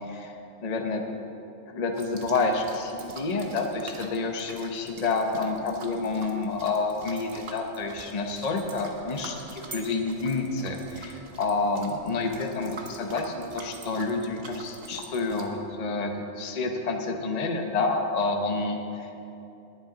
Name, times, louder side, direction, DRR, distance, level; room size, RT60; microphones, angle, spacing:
voice 1, 0.6-1.0 1.7-16.1 16.4-19.2, left 3 dB, 35° left, 3 dB, 0.9 m, -29 dB
sound 1, 1.9-15.5, right 3 dB, 50° right, 1.3 m, -44 dB
19.5 x 8.9 x 3.9 m, 2.8 s
omnidirectional pair, 1.4 m